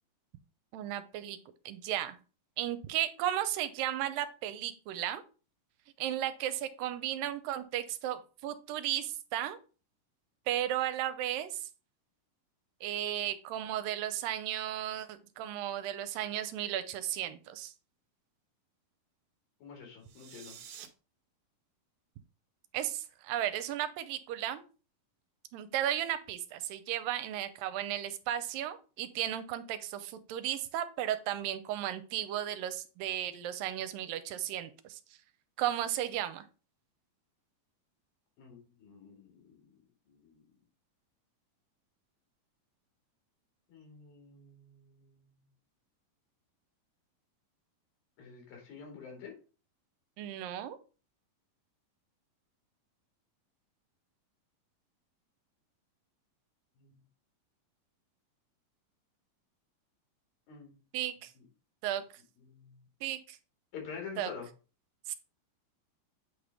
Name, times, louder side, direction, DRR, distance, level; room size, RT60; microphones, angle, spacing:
voice 1, 0.7-1.4 1.7-2.2 2.6-5.2 6.0-9.6 10.5-11.6 12.8-17.7 22.7-24.6 25.5-35.0 35.6-36.5 50.2-50.8 60.9-61.3 61.8-62.0 63.0-63.4 64.2-64.3 65.1-65.2, right 12 dB, 90° right, 12 dB, 2.4 m, -34 dB
voice 2, 19.6-20.6 38.4-39.6 40.1-40.4 43.7-45.3 48.2-49.3 56.8-56.9 60.5-60.8 61.4-61.5 62.4-62.8 63.7-64.5, left 6 dB, 85° left, 1 dB, 4.2 m, -47 dB
sound 1, 20.0-20.9, right 9 dB, 70° right, 2.1 m, -49 dB
8.5 x 3.5 x 5.2 m, 0.35 s
omnidirectional pair, 4.0 m